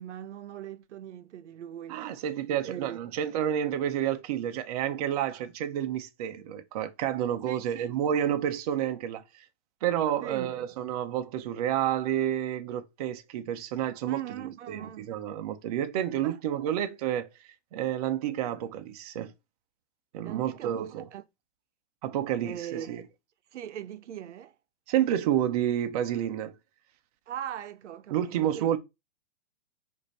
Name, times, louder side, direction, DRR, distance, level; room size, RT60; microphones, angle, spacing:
voice 1, 0.0-2.1 2.6-3.0 7.4-7.9 10.2-10.5 14.1-15.1 16.2-16.4 20.2-21.2 22.4-23.0 23.5-24.5 27.3-28.8, right 10 dB, 85° right, 0.7 m, -40 dB
voice 2, 1.9-9.4 9.8-17.3 17.7-19.3 20.1-21.0 22.0-23.0 24.9-26.5 28.1-28.8, right 10 dB, 35° right, 0.5 m, -30 dB
5.0 x 2.6 x 4.0 m
hypercardioid pair, 155°, 34 cm